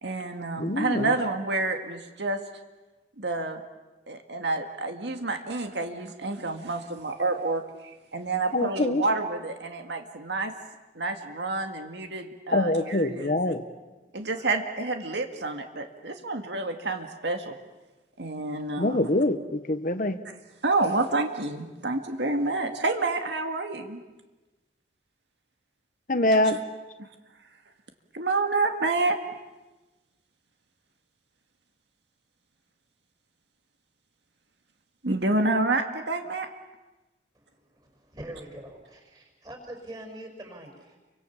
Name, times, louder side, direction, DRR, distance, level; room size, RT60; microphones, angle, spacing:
voice 1, 0.0-2.4 3.2-3.6 4.1-7.6 8.1-10.5 11.0-13.4 14.1-17.5 18.2-19.1 20.6-24.0 28.1-29.2 35.0-36.5, right 3 dB, 70° right, 5 dB, 2.0 m, -28 dB
voice 2, 0.6-1.1 8.5-9.0 12.5-13.6 18.8-20.2 26.1-26.6, left 1 dB, 45° left, 9 dB, 1.2 m, -24 dB
voice 3, 37.7-41.0, right 1 dB, 20° right, 3 dB, 6.1 m, -43 dB
30.0 x 25.0 x 7.3 m, 1.1 s
head